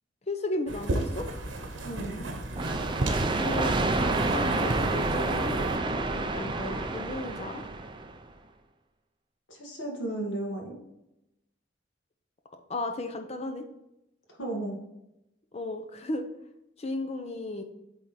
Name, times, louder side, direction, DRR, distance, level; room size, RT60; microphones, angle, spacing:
voice 1, 0.3-1.3 3.4-7.6 12.7-13.7 15.5-16.3 16.8-17.6, left 2 dB, 35° left, 6 dB, 0.7 m, -35 dB
sound 1, 0.7-5.8, right 1 dB, 85° right, 1.0 m, -34 dB
voice 2, 1.8-2.4 9.5-10.8 14.4-14.8, right 1 dB, 80° left, 0 dB, 1.9 m, -34 dB
sound 2, 2.6-8.1, right 2 dB, 25° right, 0.5 m, -28 dB
8.0 x 3.6 x 4.3 m, 0.87 s
head